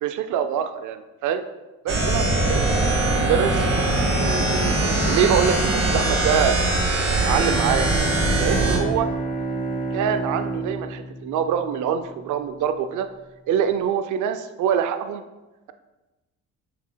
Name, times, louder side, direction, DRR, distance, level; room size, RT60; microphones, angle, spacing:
voice 1, 0.0-1.4 1.8-2.6 3.1-3.7 4.2-6.6 7.1-7.9 8.4-9.1 9.9-13.1 13.5-15.2, right 8 dB, 80° right, 8 dB, 0.5 m, -24 dB
sound 1, 1.9-8.8, right 2 dB, 45° right, 1.8 m, -21 dB
Bowed string instrument, 7.1-12.2, right 2 dB, 30° left, 1.1 m, -30 dB
7.2 x 5.9 x 2.2 m, 1.1 s
cardioid pair, 90°, 30 cm